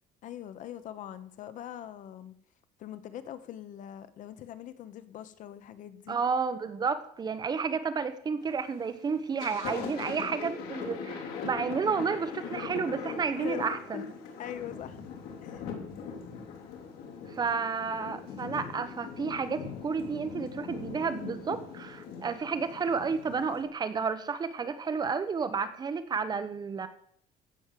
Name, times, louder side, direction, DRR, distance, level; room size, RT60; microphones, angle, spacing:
voice 1, 0.2-2.3 2.8-6.2 10.0-10.2 13.4-13.7 13.9-14.1 14.4-15.1 15.4-15.6, left 11 dB, 55° left, 12 dB, 1.1 m, -42 dB
voice 2, 6.1-14.1 17.3-26.9, right 5 dB, 25° right, 10 dB, 1.2 m, -31 dB
Thunder, 8.4-8.8 9.2-23.6, left 6 dB, 75° left, 3.4 m, -41 dB
16.0 x 6.5 x 7.6 m, 0.63 s
cardioid pair, 155°, 16 cm